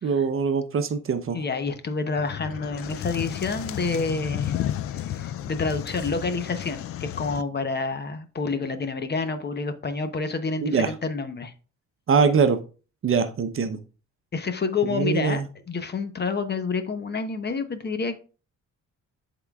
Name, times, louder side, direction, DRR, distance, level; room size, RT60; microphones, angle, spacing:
voice 1, 0.0-1.4 10.6-10.9 12.1-12.6 13.0-13.8 14.9-15.5, right 5 dB, 45° right, 9 dB, 0.8 m, -23 dB
voice 2, 1.3-4.6 5.0-11.5 14.3-15.4 15.7-18.1, left 4 dB, 35° left, 9 dB, 0.9 m, -28 dB
sound 1, 2.2-7.4, left 11 dB, 50° left, 0.4 m, -32 dB
11.5 x 3.8 x 2.3 m, 0.36 s
cardioid pair, 90°, 30 cm